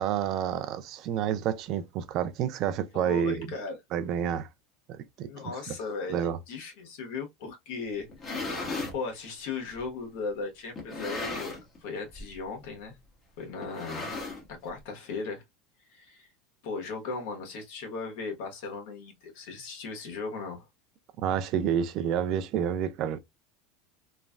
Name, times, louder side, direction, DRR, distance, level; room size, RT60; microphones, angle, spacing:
voice 1, 0.0-3.5 3.9-4.5 4.9-5.3 5.7-5.8 6.1-6.4 21.2-23.2, right 9 dB, 45° right, 0.4 m, -29 dB
voice 2, 2.9-3.8 5.2-8.1 8.9-13.0 13.4-14.2 14.5-15.4 15.9-16.3 16.6-20.6, left 4 dB, 65° left, 1.2 m, -37 dB
sound 1, 8.0-9.0 9.8-9.9 10.8-11.8 12.1-12.4 12.6-12.7 13.6-14.7, left 3 dB, 20° left, 1.0 m, -36 dB
3.1 x 2.2 x 2.3 m
supercardioid pair, 145°, 0 cm